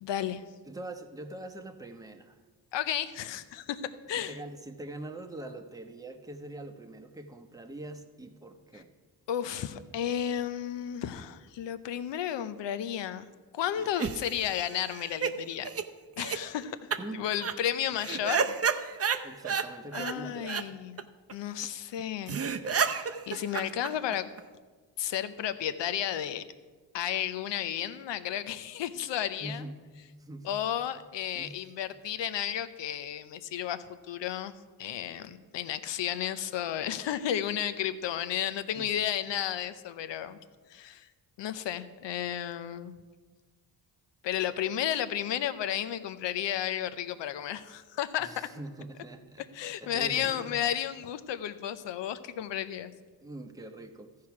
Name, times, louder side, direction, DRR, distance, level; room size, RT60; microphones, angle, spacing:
voice 1, 0.0-0.4 2.7-4.4 9.3-13.2 13.5-15.7 16.2-18.5 19.9-21.0 21.3-22.4 22.6-24.3 25.0-26.4 26.9-29.6 30.4-34.5 34.8-40.4 40.7-41.1 41.4-42.9 44.2-48.3 49.5-52.9, left 10 dB, 75° left, 12 dB, 0.7 m, -33 dB
voice 2, 0.7-2.4 4.1-8.9 17.0-17.3 19.2-20.5 29.4-29.8 30.2-30.6 31.3-31.6 38.8-39.0 48.2-49.5 49.8-50.6 53.2-54.1, right 2 dB, 10° right, 5 dB, 0.9 m, -43 dB
sound 1, 13.8-15.3 15.6-15.8 16.2-16.4 16.9-17.0 17.3-17.5 18.0-19.7 19.9-20.1 20.4-20.6 21.0-21.1 21.3-21.4 21.6-21.7 22.0-22.1 22.3-24.4, right 6 dB, 35° right, 0.6 m, -31 dB
14.0 x 4.8 x 5.9 m, 1.4 s
cardioid pair, 70°, 44 cm